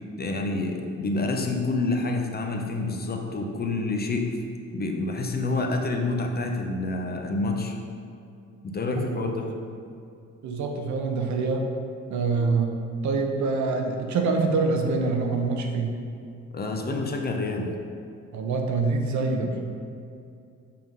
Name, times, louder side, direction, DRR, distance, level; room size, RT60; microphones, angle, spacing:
voice 1, 0.2-4.4 4.7-7.8 8.6-9.5 16.5-17.7, left 2 dB, 30° left, 3 dB, 0.7 m, -28 dB
voice 2, 8.9-9.4 10.4-11.7 12.1-12.8 13.0-15.9 18.3-19.6, right 4 dB, 70° right, 3 dB, 0.8 m, -25 dB
5.8 x 3.7 x 5.3 m, 2.5 s
cardioid pair, 90°, 30 cm